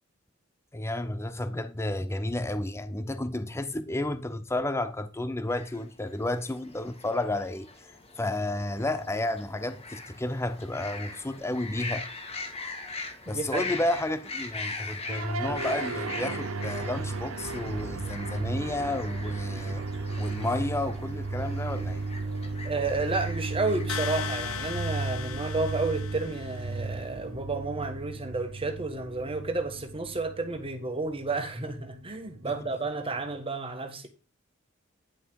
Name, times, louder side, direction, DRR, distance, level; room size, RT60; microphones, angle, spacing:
voice 1, 0.7-12.1 13.3-19.8 20.2-22.0, left 1 dB, 15° left, 0.6 m, -31 dB
sound 1, 5.5-24.7, left 3 dB, 30° left, 1.8 m, -42 dB
voice 2, 13.3-13.7 22.6-34.1, right 3 dB, 25° right, 1.6 m, -31 dB
sound 2, 15.1-33.4, right 3 dB, 75° right, 0.8 m, -35 dB
sound 3, 23.9-26.8, left 9 dB, 75° left, 0.7 m, -37 dB
10.0 x 5.8 x 4.7 m
head